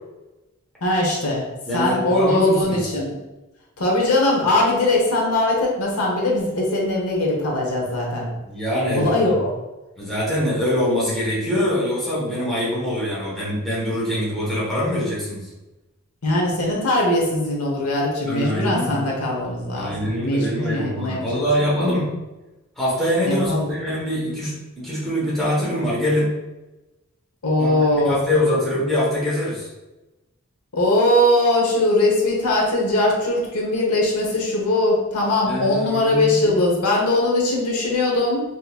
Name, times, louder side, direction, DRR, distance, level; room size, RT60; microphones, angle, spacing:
voice 1, 0.8-1.4 1.7-3.2 3.8-8.3 8.9-9.5 16.2-21.4 23.2-23.7 27.4-28.2 30.7-38.4, left 1 dB, 85° left, -2 dB, 0.9 m, -20 dB
voice 2, 1.7-2.8 8.5-9.3 10.0-15.5 18.2-19.1 19.7-22.1 22.8-26.4 27.6-29.7 35.4-36.6, left 1 dB, ahead, -8 dB, 1.2 m, -24 dB
3.7 x 2.9 x 2.4 m, 1.0 s
head